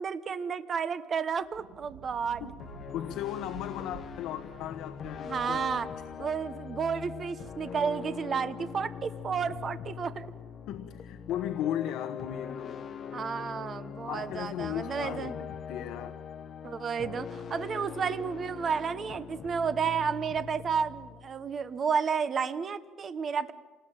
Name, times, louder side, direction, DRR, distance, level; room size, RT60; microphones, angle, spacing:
voice 1, 0.0-2.5 5.2-5.9 6.2-10.2 13.1-15.4 16.6-23.5, right 6 dB, 30° right, 12 dB, 1.1 m, -31 dB
Thunder, 1.4-8.0, right 6 dB, 85° right, 2.9 m, -52 dB
sound 1, 2.6-21.8, left 7 dB, 35° left, 1.3 m, -42 dB
voice 2, 2.9-5.7 10.7-12.8 14.1-15.4 15.7-16.1, left 11 dB, 70° left, 8 dB, 1.2 m, -36 dB
28.0 x 20.0 x 9.0 m, 1.4 s
cardioid pair, 150°, 0 cm